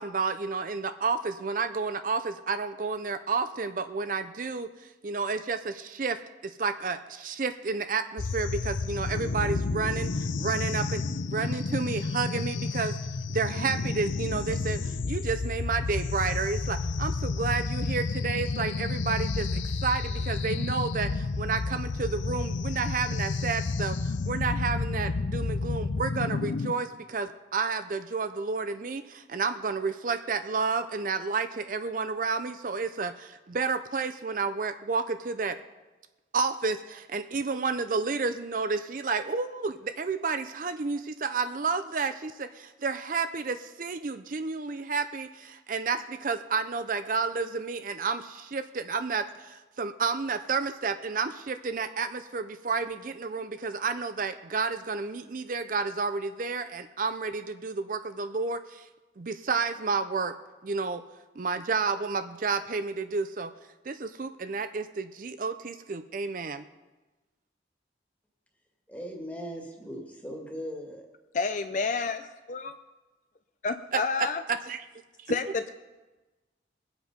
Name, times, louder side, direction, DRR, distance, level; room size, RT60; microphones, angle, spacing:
voice 1, 0.0-13.0 13.3-35.6 36.3-58.9 59.2-60.3 60.6-61.0 61.4-63.5 63.9-66.6 73.9-74.8 75.3-75.4, right 4 dB, 45° right, 0.5 m, -31 dB
sound 1, 8.2-26.7, left 3 dB, 85° left, 0.6 m, -31 dB
voice 2, 68.9-71.1, equal, 10° left, 1.9 m, -39 dB
voice 3, 71.3-72.2 72.5-72.7 73.6-74.4 75.3-75.7, left 4 dB, 40° left, 0.5 m, -29 dB
22.0 x 8.1 x 5.1 m
head